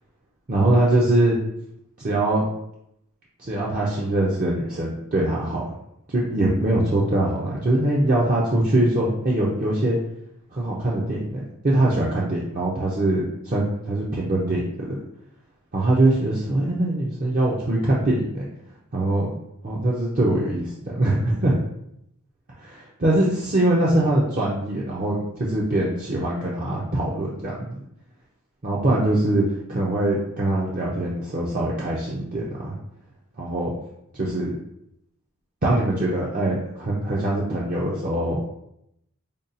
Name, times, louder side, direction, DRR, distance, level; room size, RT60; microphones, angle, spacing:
voice 1, 0.5-1.3 2.0-2.4 3.4-5.6 6.1-10.0 10.5-14.9 15.7-18.5 18.9-19.3 19.6-21.5 22.6-22.7 23.0-27.8 28.6-29.4 29.7-32.8 33.4-33.7 34.1-34.5 35.6-38.4, right 1 dB, 40° right, -5 dB, 0.5 m, -22 dB
5.2 x 2.3 x 2.6 m, 0.78 s
head